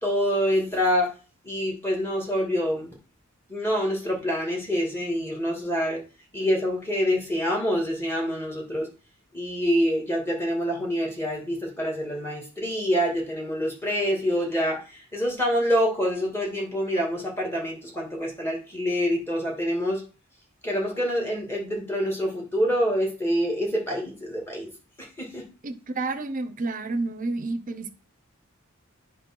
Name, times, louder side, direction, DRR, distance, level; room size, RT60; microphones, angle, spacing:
voice 1, 0.0-1.1 1.4-2.9 3.5-6.0 6.3-8.9 9.3-20.0 20.6-24.7 25.0-25.5, equal, 10° left, 2.3 m, -26 dB
voice 2, 25.6-27.9, right 3 dB, 40° right, 0.8 m, -30 dB
8.8 x 3.3 x 6.1 m
head